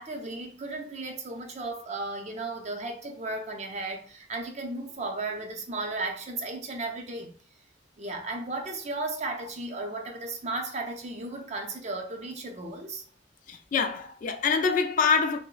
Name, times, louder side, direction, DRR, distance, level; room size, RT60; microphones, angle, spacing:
voice 1, 0.0-7.3 8.0-13.0, right 2 dB, 40° right, 0.6 m, -35 dB
voice 2, 13.5-15.4, left 5 dB, 45° left, 0.3 m, -25 dB
3.1 x 2.1 x 3.7 m
head